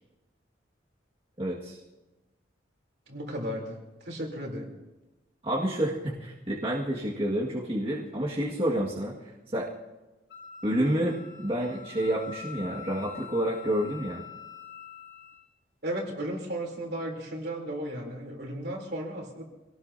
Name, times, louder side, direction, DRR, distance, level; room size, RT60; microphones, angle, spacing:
voice 1, 1.4-1.8 5.4-9.1 9.5-9.7 10.6-14.2, right 1 dB, 30° right, -5 dB, 1.9 m, -29 dB
voice 2, 3.1-4.7 15.8-19.4, right 1 dB, 55° right, 0 dB, 3.5 m, -35 dB
Wind instrument woodwind instrument, 10.3-15.4, left 7 dB, 60° left, 2.1 m, -45 dB
26.0 x 18.5 x 2.8 m, 1.1 s
head